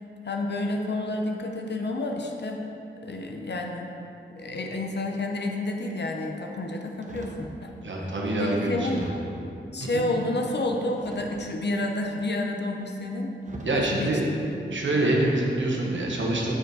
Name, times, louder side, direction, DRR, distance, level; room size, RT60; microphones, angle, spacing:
voice 1, 0.2-2.6 3.0-3.9 4.4-7.7 8.0-8.1 8.4-9.0 9.7-13.3 13.7-14.2, left 2 dB, 60° left, 2 dB, 0.7 m, -30 dB
sound 1, 7.0-7.5 8.2-8.3 8.9-9.5 10.9-11.6 12.8-12.9 13.4-13.9 14.5-14.8, right 2 dB, 40° right, 0.9 m, -42 dB
voice 2, 7.8-9.1 9.8-10.1 13.6-14.2 14.7-16.6, right 1 dB, 70° right, -2 dB, 1.2 m, -26 dB
6.8 x 5.0 x 4.8 m, 2.7 s
wide cardioid pair, 75°, 20 cm